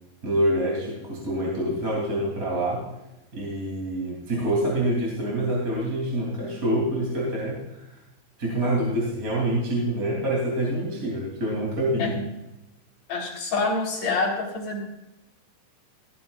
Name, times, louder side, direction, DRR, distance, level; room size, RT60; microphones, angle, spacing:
voice 1, 0.2-2.8 3.3-7.8 8.4-12.2, right 1 dB, 20° right, -4 dB, 2.7 m, -26 dB
voice 2, 13.1-14.8, left 3 dB, 40° left, -3 dB, 4.3 m, -26 dB
15.0 x 14.0 x 2.5 m, 0.94 s
omnidirectional pair, 5.5 m